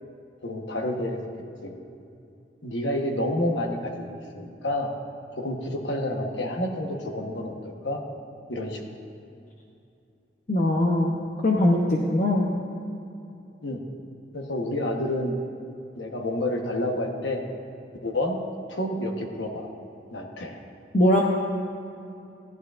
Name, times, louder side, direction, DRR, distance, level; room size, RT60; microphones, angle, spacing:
voice 1, 0.4-1.2 1.6-1.8 2.6-4.9 5.3-8.0 8.5-8.8 13.6-13.8 14.3-15.4 16.0-17.4 18.0-18.4 18.7-19.7 20.1-20.6, left 1 dB, 90° left, 2 dB, 1.1 m, -29 dB
voice 2, 10.5-11.2 11.4-12.5 20.9-21.2, left 1 dB, 45° left, -1 dB, 0.7 m, -21 dB
14.5 x 11.0 x 2.5 m, 2.7 s
head